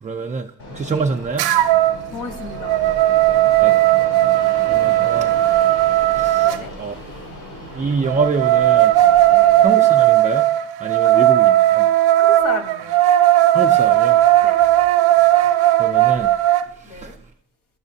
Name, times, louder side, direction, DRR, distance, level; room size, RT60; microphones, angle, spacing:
voice 1, 0.0-1.5 3.6-3.8 4.7-5.3 6.2-7.0 7.7-9.0 9.6-10.4 10.8-11.9 13.5-14.2 15.8-16.3 16.8-17.1, right 4 dB, 20° right, 0.3 m, -26 dB
Fixed-wing aircraft airplane, 0.6-9.7, left 1 dB, 85° left, 3.1 m, -36 dB
sound 1, 1.4-2.0 2.4-6.6 8.1-16.7, right 14 dB, 75° right, 0.5 m, -16 dB
voice 2, 2.1-2.9 4.4-4.5 6.4-6.7 9.3-9.5 11.0-11.2 12.1-13.0 14.4-14.6 16.8-17.2, left 4 dB, 55° left, 1.2 m, -33 dB
12.5 x 6.2 x 2.7 m
cardioid pair, 105°, 38 cm